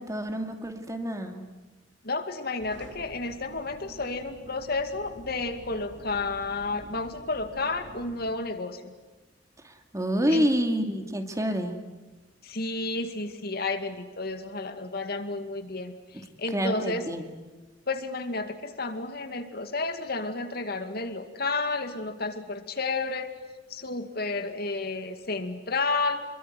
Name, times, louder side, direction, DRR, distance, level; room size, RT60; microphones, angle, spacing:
voice 1, 0.0-1.4 9.6-11.7 16.1-16.2 16.5-17.2, equal, 20° right, 6 dB, 2.6 m, -28 dB
voice 2, 2.0-8.9 10.3-10.5 12.4-17.1 17.9-23.3 23.7-26.2, left 3 dB, 55° left, 8 dB, 2.4 m, -31 dB
sound 1, 2.6-8.4, right 2 dB, 75° right, 2.8 m, -48 dB
27.5 x 23.0 x 9.4 m, 1.2 s
head